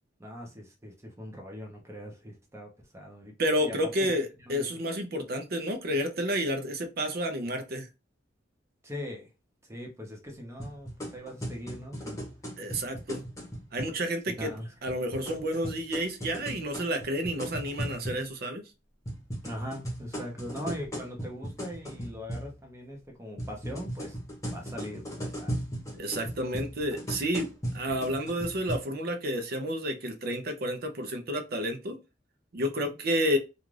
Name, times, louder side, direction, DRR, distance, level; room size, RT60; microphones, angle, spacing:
voice 1, 0.2-3.3 3.6-4.1 4.5-4.8 8.8-9.3 9.6-12.2 14.4-14.7 19.4-24.2 24.5-25.6, equal, 15° right, 0.7 m, -41 dB
voice 2, 3.4-7.9 12.6-13.3 13.7-14.5 14.8-18.6 26.0-32.0 32.5-33.4, equal, 55° right, 0.6 m, -30 dB
sound 1, 10.6-13.9 14.9-18.2 19.1-22.5 23.4-28.8, equal, 15° left, 1.0 m, -37 dB
2.4 x 2.4 x 3.1 m
head